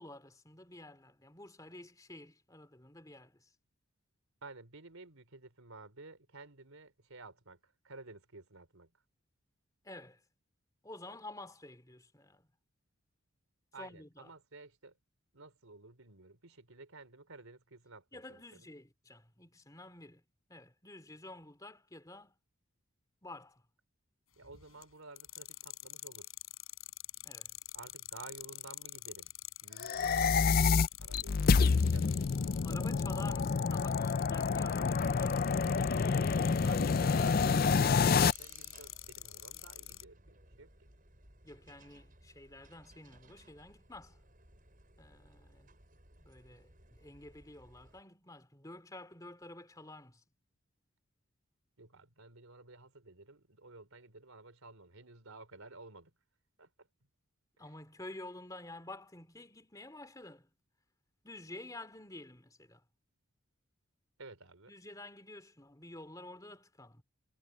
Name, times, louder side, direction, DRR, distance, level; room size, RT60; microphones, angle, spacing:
voice 1, 0.0-3.5 9.8-10.2 10.8-12.4 13.8-14.3 18.1-20.2 20.5-22.3 23.2-23.6 27.2-27.5 32.6-35.8 41.4-44.2 45.0-45.7 46.2-50.2 57.6-60.5 61.2-62.8 64.7-67.0, left 2 dB, 15° left, 2.7 m, -50 dB
voice 2, 4.4-8.9 13.7-14.9 15.3-18.7 24.4-26.3 27.7-29.3 29.6-30.7 31.0-32.2 36.6-40.7 51.8-56.1 56.6-56.9 57.6-57.7 64.2-64.8, right 3 dB, 80° right, 3.7 m, -53 dB
sound 1, 24.4-24.8 25.2-40.0, left 15 dB, 75° left, 6.9 m, -46 dB
sound 2, 29.8-38.3, left 5 dB, 45° left, 0.4 m, -28 dB
sound 3, 37.7-48.0, right 2 dB, 40° right, 7.0 m, -60 dB
head